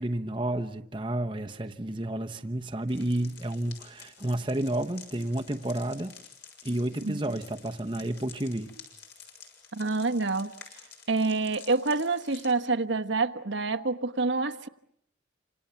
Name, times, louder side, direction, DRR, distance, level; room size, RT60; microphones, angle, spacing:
voice 1, 0.0-6.1 6.6-8.7, right 1 dB, 25° right, 1.0 m, -31 dB
sound 1, 2.9-12.5, left 7 dB, 65° left, 6.9 m, -50 dB
voice 2, 9.7-10.5 11.1-14.7, right 3 dB, 80° right, 1.3 m, -27 dB
29.0 x 26.5 x 7.1 m
head